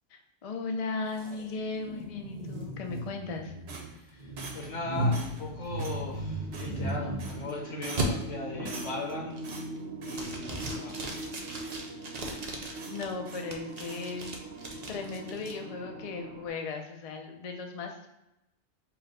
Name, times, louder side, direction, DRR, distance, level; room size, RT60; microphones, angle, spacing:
voice 1, 0.1-3.5 12.2-12.4 12.8-14.4 14.9-18.1, left 4 dB, 50° left, 3 dB, 0.4 m, -37 dB
sound 1, 1.1-7.5 8.0-8.1 8.6-8.9 9.3-9.8 10.1-13.0 13.5-15.5, right 1 dB, 45° right, 0.6 m, -36 dB
sound 2, 3.7-4.8 5.1-5.5 5.8-6.0 6.5-6.9 7.2-7.5 7.8-8.2 8.6-9.1 9.4-10.3 10.5-10.8 11.1-11.9 12.2-12.4 12.7-13.5 13.8-14.1, right 3 dB, 60° right, 1.0 m, -45 dB
voice 2, 3.9-9.3 10.0-11.0, left 3 dB, 80° left, -1 dB, 1.4 m, -38 dB
sound 3, 5.9-16.5, right 2 dB, 90° right, 1.1 m, -42 dB
4.7 x 2.2 x 4.8 m, 0.88 s
omnidirectional pair, 1.3 m